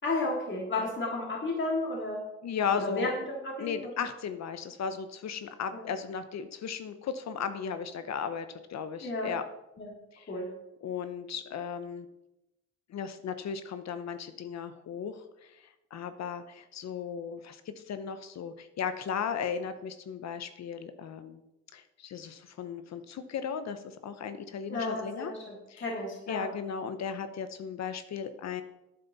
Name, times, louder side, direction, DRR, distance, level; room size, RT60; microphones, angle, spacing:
voice 1, 0.0-2.2 2.7-3.9 5.7-5.9 9.0-9.3 9.8-9.9 10.3-10.5 24.7-26.5, left 2 dB, 40° left, -3 dB, 3.2 m, -33 dB
voice 2, 2.4-3.1 3.6-9.4 10.1-10.3 10.8-12.1 12.9-21.4 21.7-25.3 25.7-25.8 26.3-28.6, left 7 dB, 60° left, 10 dB, 0.9 m, -36 dB
11.5 x 9.4 x 4.1 m, 0.92 s
cardioid pair, 90°, 30 cm